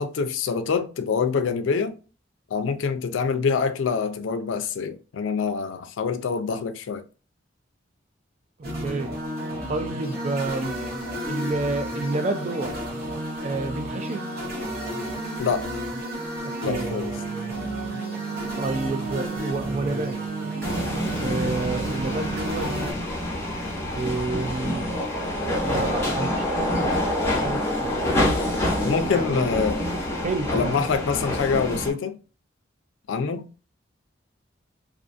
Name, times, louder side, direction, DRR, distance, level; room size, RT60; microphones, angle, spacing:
voice 1, 0.0-1.9 2.5-7.0 15.4-15.7 16.6-17.1 28.8-29.8 30.5-32.2 33.1-33.5, left 5 dB, 90° left, 0.4 m, -25 dB
sound 1, 8.6-22.9, right 1 dB, 55° right, 1.0 m, -31 dB
voice 2, 8.8-9.2 9.7-10.8 11.3-12.8 13.4-14.3 16.4-16.9 18.6-20.2 21.2-22.7 23.9-24.9 25.6-28.3 29.1-29.5 30.2-30.9 31.9-32.0, right 3 dB, 40° right, 0.4 m, -30 dB
sound 2, 20.6-31.9, left 1 dB, 15° left, 0.8 m, -27 dB
2.4 x 2.4 x 2.4 m
head